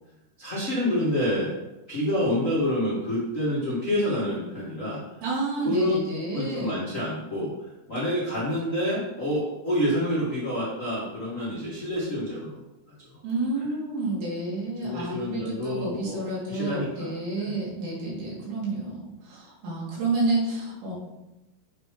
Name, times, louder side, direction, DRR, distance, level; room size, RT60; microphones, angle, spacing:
voice 1, 0.4-1.5 1.9-5.0 5.6-6.0 6.3-12.6 13.5-13.6 14.8-17.6, left 1 dB, 65° left, -9 dB, 0.7 m, -28 dB
voice 2, 5.2-6.7 13.2-20.9, right 2 dB, 75° right, -6 dB, 4.1 m, -30 dB
7.9 x 3.6 x 4.8 m, 0.96 s
omnidirectional pair, 4.4 m